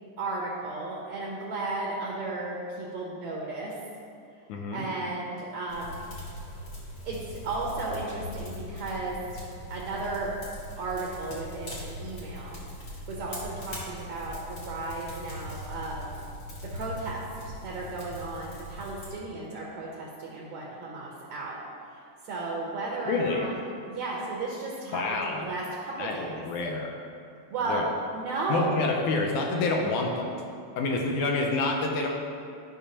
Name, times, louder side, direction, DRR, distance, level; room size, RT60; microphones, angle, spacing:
voice 1, 0.2-3.8 4.7-6.1 7.1-9.4 9.7-10.4 10.8-12.6 13.1-16.1 16.6-17.2 17.6-21.6 22.2-23.5 23.9-26.4 27.5-27.9 28.1-28.8, right 3 dB, 70° right, -4 dB, 1.9 m, -34 dB
voice 2, 4.5-4.9 23.1-23.5 24.9-25.4 26.0-27.0 27.7-27.9 28.5-30.3 30.8-32.1, left 3 dB, 80° left, 1 dB, 2.1 m, -28 dB
sound 1, 5.7-19.1, left 1 dB, 50° left, 1.0 m, -41 dB
12.0 x 5.5 x 2.8 m, 2.4 s
omnidirectional pair, 3.7 m